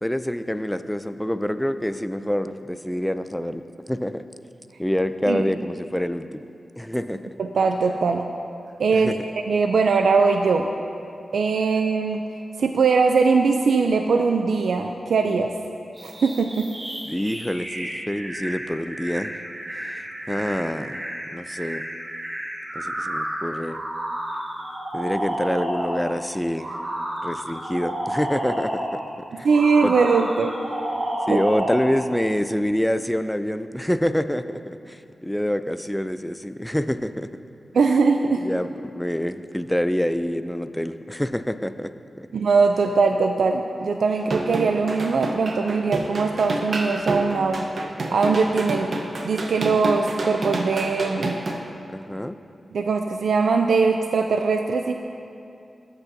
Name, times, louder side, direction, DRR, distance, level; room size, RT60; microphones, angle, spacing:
voice 1, 0.0-3.6 3.9-4.2 4.8-6.5 6.8-7.2 8.9-9.2 17.1-19.3 19.7-21.0 21.3-21.9 22.8-23.8 24.9-26.7 27.2-29.0 29.4-29.5 29.8-29.9 31.3-37.3 38.4-41.9 42.2-42.3 51.9-52.4, equal, 5° left, 11 dB, 0.3 m, -26 dB
voice 2, 7.4-8.2 8.8-9.1 9.5-10.7 11.3-12.2 12.6-15.5 16.0-16.7 29.4-30.5 31.3-31.4 37.7-38.4 42.3-47.7 48.1-48.9 49.2-51.4 52.7-54.9, right 4 dB, 85° right, 5 dB, 0.4 m, -21 dB
sound 1, 15.9-26.1 26.6-29.0 29.5-32.0, right 1 dB, 45° right, 2.2 m, -31 dB
sound 2, 44.2-51.6, right 2 dB, 60° right, 0.8 m, -29 dB
14.0 x 8.2 x 2.7 m, 2.6 s
wide cardioid pair, 85°, 0 cm